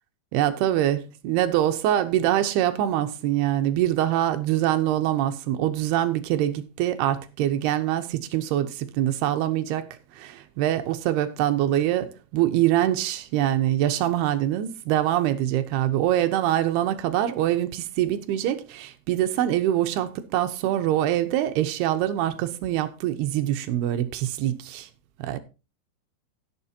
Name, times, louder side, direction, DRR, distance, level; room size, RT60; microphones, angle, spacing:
voice 1, 0.3-24.9 25.2-25.4, right 12 dB, 75° right, 2.5 m, -24 dB
16.5 x 7.6 x 2.8 m
omnidirectional pair, 5.3 m